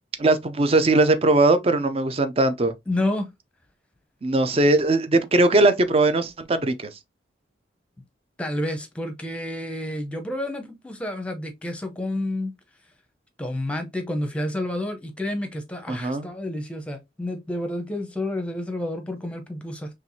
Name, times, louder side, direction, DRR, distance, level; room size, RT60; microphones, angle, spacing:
voice 1, 0.2-2.7 4.2-6.9 15.9-16.3, right 2 dB, 35° right, 0.5 m, -20 dB
voice 2, 2.9-3.3 8.4-12.5 13.4-19.9, left 1 dB, 5° left, 0.7 m, -29 dB
4.5 x 3.2 x 2.7 m
head